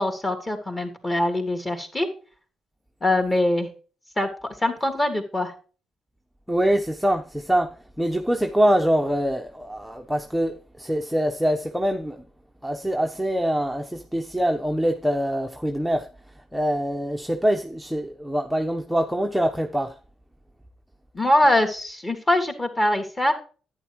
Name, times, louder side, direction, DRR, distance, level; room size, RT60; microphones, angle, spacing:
voice 1, 0.0-2.1 3.0-3.7 4.2-4.3 4.6-5.5 21.1-23.3, left 1 dB, 20° left, 3.2 m, -23 dB
voice 2, 6.5-12.2 12.6-16.1 16.5-19.9, equal, ahead, 1.0 m, -24 dB
11.0 x 9.6 x 3.1 m
cardioid pair, 90°, 0 cm